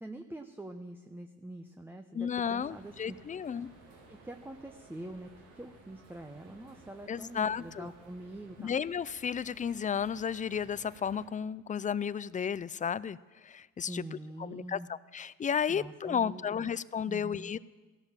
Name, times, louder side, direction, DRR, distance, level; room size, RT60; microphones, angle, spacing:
voice 1, 0.0-3.2 4.1-8.7 13.8-14.9 15.7-16.6 17.1-17.5, right 1 dB, 5° right, 5 dB, 0.8 m, -45 dB
voice 2, 2.1-3.7 7.1-7.9 8.6-13.2 13.4-14.0 14.4-17.6, left 7 dB, 25° left, 19 dB, 0.4 m, -33 dB
sound 1, 2.4-11.3, right 3 dB, 85° right, 2.8 m, -57 dB
16.0 x 11.5 x 7.4 m, 1.3 s
cardioid pair, 90°, 30 cm